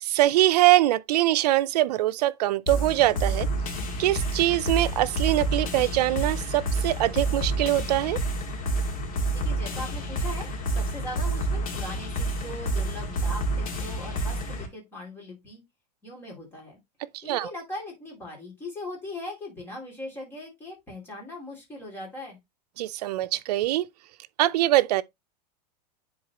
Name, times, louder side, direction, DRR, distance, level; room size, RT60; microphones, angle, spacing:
voice 1, 0.0-3.5 4.0-8.2 17.1-17.5 22.8-23.9 24.4-25.0, right 15 dB, 70° right, 0.5 m, -23 dB
sound 1, 2.7-14.7, right 2 dB, 55° left, 2.3 m, -29 dB
voice 2, 9.3-15.6 16.0-16.8 17.2-22.4, left 1 dB, 10° left, 2.7 m, -39 dB
9.6 x 4.0 x 2.9 m
supercardioid pair, 165°, 21 cm